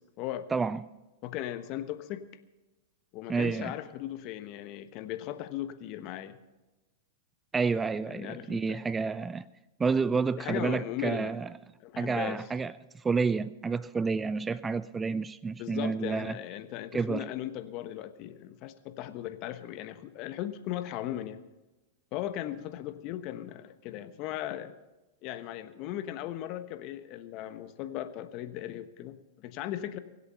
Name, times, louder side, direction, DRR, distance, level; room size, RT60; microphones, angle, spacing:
voice 1, 0.2-0.5 1.2-2.3 3.1-6.4 8.0-8.8 10.4-11.4 11.8-12.4 15.6-21.4 22.1-24.7 25.2-30.0, left 12 dB, 45° left, 1.2 m, -37 dB
voice 2, 3.3-3.7 7.5-9.5 9.8-11.5 12.0-16.3 16.9-17.3, right 4 dB, 15° right, 0.4 m, -29 dB
23.5 x 8.3 x 5.6 m
hypercardioid pair, 110°, 0 cm